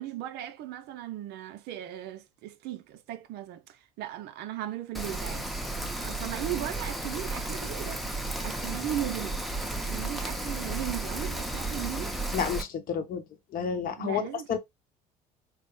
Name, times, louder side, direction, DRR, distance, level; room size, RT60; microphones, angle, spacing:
voice 1, 0.0-8.0 8.4-12.2 14.0-14.6, right 12 dB, 60° right, 0.5 m, -37 dB
Rain, 4.9-12.6, right 2 dB, ahead, 0.6 m, -33 dB
voice 2, 12.3-13.2 13.5-14.2 14.5-14.6, left 7 dB, 50° left, 0.8 m, -30 dB
3.7 x 2.0 x 3.0 m
hypercardioid pair, 70°, 19 cm